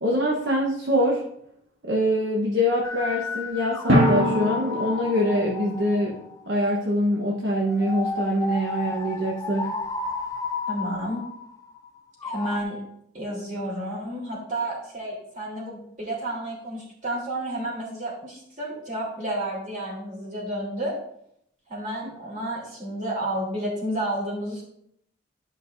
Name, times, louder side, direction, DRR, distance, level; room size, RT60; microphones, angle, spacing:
voice 1, 0.0-1.2 1.8-6.2 6.5-9.7, equal, 60° right, -2 dB, 1.1 m, -24 dB
sound 1, 2.8-6.6 7.6-12.6, left 3 dB, 15° left, 0.3 m, -33 dB
Drum, 3.9-6.2, equal, 85° right, 1.8 m, -23 dB
voice 2, 10.7-11.2 12.2-12.8 13.1-20.9 21.7-24.6, right 1 dB, 40° right, -4 dB, 3.2 m, -31 dB
11.5 x 5.4 x 2.6 m, 0.73 s
head